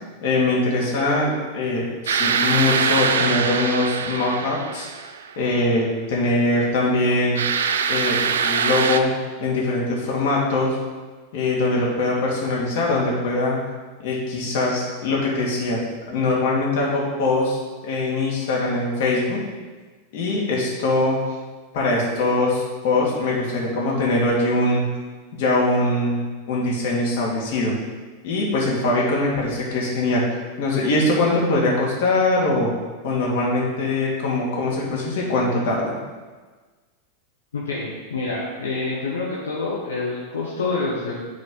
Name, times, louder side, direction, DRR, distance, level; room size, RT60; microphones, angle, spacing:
voice 1, 0.2-4.9 5.4-7.4 7.9-9.1 9.4-10.8 11.3-13.6 14.0-15.8 16.1-19.4 20.1-21.2 21.7-24.9 25.3-26.2 26.5-27.8 28.2-30.2 30.6-32.7 33.0-35.9, left 2 dB, 65° left, -3 dB, 2.2 m, -22 dB
sound 1, 2.1-5.3 7.3-9.0, right 6 dB, 80° right, 0.4 m, -23 dB
voice 2, 37.5-41.2, left 3 dB, 90° left, -5 dB, 1.1 m, -27 dB
9.9 x 3.8 x 3.9 m, 1.4 s
hypercardioid pair, 100°, 0 cm